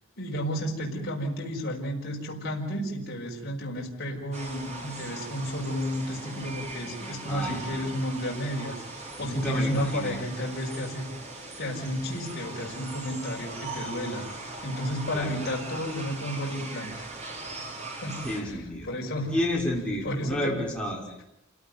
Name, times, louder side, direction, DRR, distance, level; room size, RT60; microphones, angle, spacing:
voice 1, 0.2-11.1 11.6-14.3 14.6-16.9 17.9-19.3 20.0-20.6, equal, 50° left, -2 dB, 5.5 m, -32 dB
sound 1, 4.3-18.4, right 2 dB, 35° right, 4.8 m, -40 dB
voice 2, 7.3-7.8 9.2-10.2 15.1-15.3 18.2-18.9 19.3-21.2, left 1 dB, 5° left, -3 dB, 5.9 m, -31 dB
29.0 x 17.5 x 9.3 m, 0.80 s
head